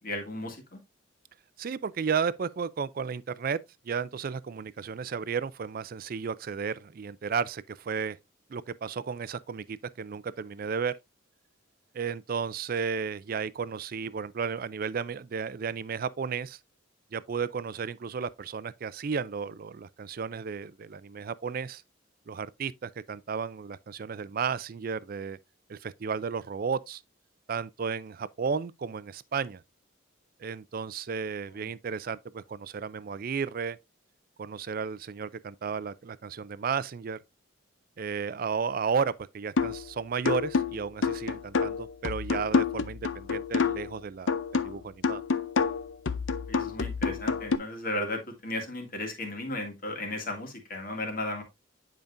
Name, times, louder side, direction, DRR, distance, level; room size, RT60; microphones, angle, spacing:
voice 1, 0.0-0.8 31.6-31.7 46.5-51.4, left 1 dB, 45° left, 2.0 m, -35 dB
voice 2, 1.6-3.6 3.8-8.2 8.5-11.0 11.9-16.6 17.1-21.8 22.3-25.4 25.7-27.0 27.5-29.6 30.4-33.8 34.4-37.2 38.0-45.2, right 6 dB, 45° right, 0.4 m, -33 dB
sound 1, 39.6-39.9 40.2-43.9 44.3-47.6, left 5 dB, 70° left, 0.6 m, -28 dB
9.4 x 5.1 x 2.6 m
head